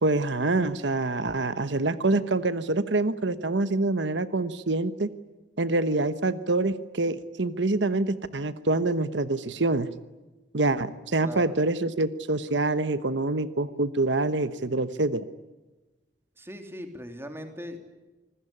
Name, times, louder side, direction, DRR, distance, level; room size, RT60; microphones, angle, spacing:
voice 1, 0.0-5.1 5.6-9.9 10.5-15.2, right 2 dB, 80° right, 13 dB, 1.1 m, -26 dB
voice 2, 11.2-11.6 16.4-17.8, equal, 15° right, 6 dB, 3.2 m, -39 dB
26.5 x 20.0 x 10.0 m, 1.2 s
head